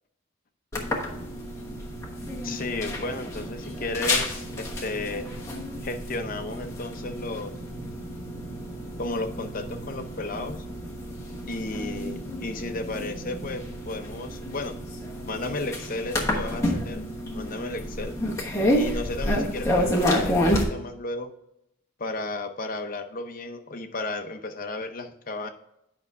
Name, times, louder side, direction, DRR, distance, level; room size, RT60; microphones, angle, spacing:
sound 1, 0.7-20.6, left 1 dB, 15° left, 1.1 m, -30 dB
sound 2, 1.8-13.6, equal, 15° right, 2.7 m, -44 dB
voice 1, 2.4-5.3 5.8-7.5 9.0-10.7 11.4-14.8 15.3-17.1 17.3-18.2 18.7-21.3 22.0-25.5, left 2 dB, 40° left, 7 dB, 0.6 m, -33 dB
9.0 x 5.4 x 3.6 m, 0.83 s
head